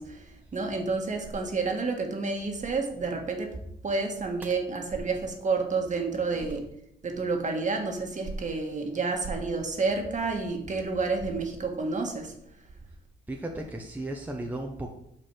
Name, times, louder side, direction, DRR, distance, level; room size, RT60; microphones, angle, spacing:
voice 1, 0.0-3.5 3.8-6.6 7.0-12.3, right 4 dB, 40° right, 3 dB, 1.6 m, -30 dB
voice 2, 13.3-14.9, right 1 dB, 10° right, 1 dB, 0.9 m, -35 dB
6.4 x 4.1 x 6.1 m, 0.78 s
cardioid pair, 90°, 20 cm